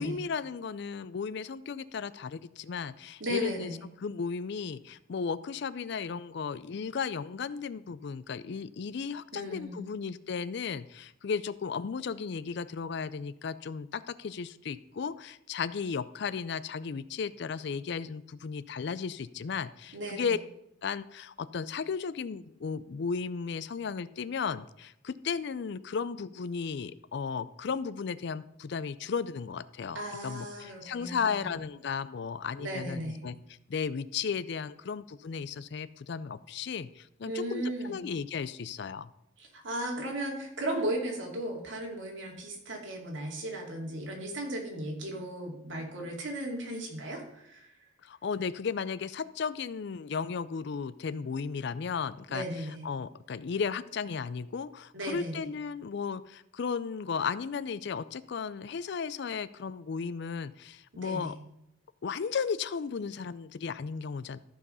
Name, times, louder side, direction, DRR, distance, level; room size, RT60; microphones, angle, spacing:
voice 1, 0.0-3.7 4.0-20.4 20.8-30.0 30.2-33.4 33.7-39.1 48.0-52.4 52.8-61.4 62.0-64.4, left 5 dB, 60° left, 16 dB, 0.4 m, -35 dB
voice 2, 3.2-3.8 9.3-9.9 19.9-20.4 29.9-31.5 32.6-33.2 37.2-38.0 39.4-47.7 52.3-52.9 54.9-55.4 60.9-61.3, right 1 dB, 75° right, 0 dB, 2.5 m, -36 dB
13.5 x 4.7 x 5.5 m, 0.83 s
head